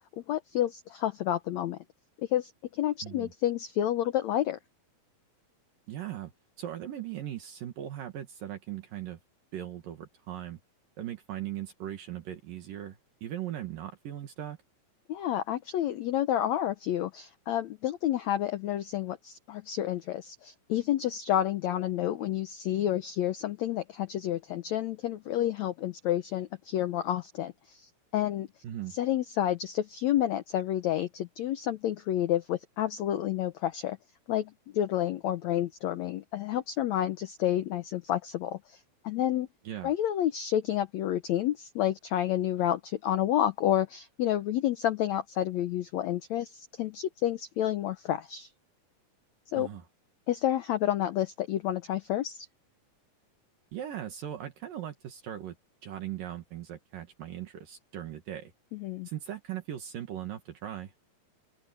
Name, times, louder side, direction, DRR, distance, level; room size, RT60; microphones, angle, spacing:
voice 1, 0.2-1.8 2.2-4.6 15.1-28.5 28.9-34.0 34.3-39.5 39.8-48.5 49.5-49.7 50.3-52.5 58.7-59.1, left 12 dB, 80° left, 1.6 m, -30 dB
voice 2, 5.9-6.3 6.6-9.2 9.5-10.6 11.0-14.6 28.6-29.0 39.6-39.9 49.6-49.8 53.7-55.5 55.8-58.5 59.0-60.9, right 11 dB, 70° right, 3.3 m, -39 dB
open air
omnidirectional pair, 4.3 m